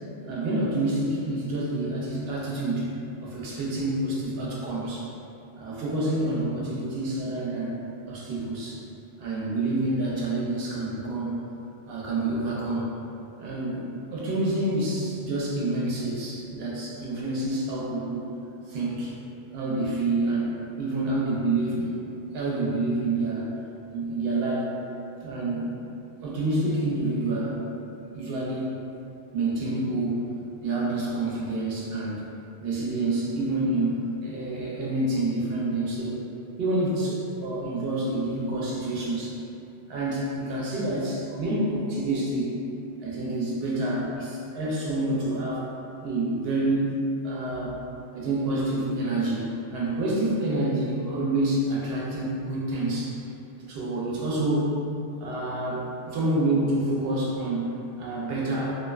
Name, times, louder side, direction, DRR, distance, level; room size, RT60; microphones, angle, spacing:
voice 1, 0.3-2.9 3.2-5.1 5.6-8.8 9.2-11.4 11.9-12.9 13.4-18.3 18.7-19.2 19.5-22.0 22.3-23.5 23.9-24.7 25.2-25.7 26.2-27.9 28.1-28.8 29.3-30.3 30.6-32.2 32.6-36.2 36.6-39.4 39.9-42.5 43.0-45.7 46.0-47.0 47.2-47.8 48.1-53.1 53.7-54.8 55.2-58.7, right 2 dB, 75° right, -5 dB, 0.8 m, -28 dB
2.5 x 2.1 x 2.3 m, 2.7 s
omnidirectional pair, 1.1 m